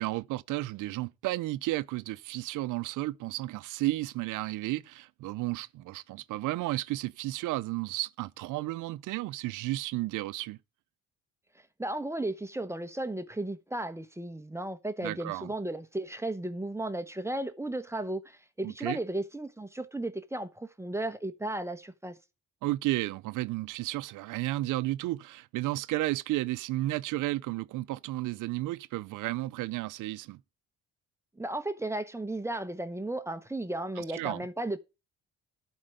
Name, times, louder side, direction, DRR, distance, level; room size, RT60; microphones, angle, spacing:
voice 1, 0.0-10.6 15.0-15.5 18.6-19.0 22.6-30.4 34.0-34.4, right 18 dB, 90° right, 0.5 m, -33 dB
voice 2, 11.8-22.2 31.4-34.8, right 1 dB, 10° right, 1.0 m, -35 dB
11.5 x 4.6 x 6.5 m
cardioid pair, 90°, 30 cm